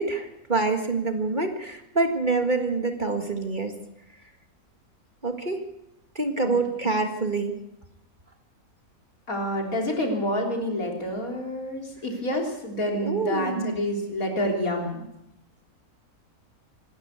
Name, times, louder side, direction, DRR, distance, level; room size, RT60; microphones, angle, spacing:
voice 1, 0.0-3.7 5.2-5.6 6.2-7.6 12.9-13.8, right 3 dB, 30° right, 5 dB, 1.9 m, -26 dB
voice 2, 6.4-7.1 9.3-15.0, equal, 65° left, 1 dB, 4.1 m, -28 dB
26.5 x 12.5 x 8.3 m, 0.87 s
omnidirectional pair, 1.6 m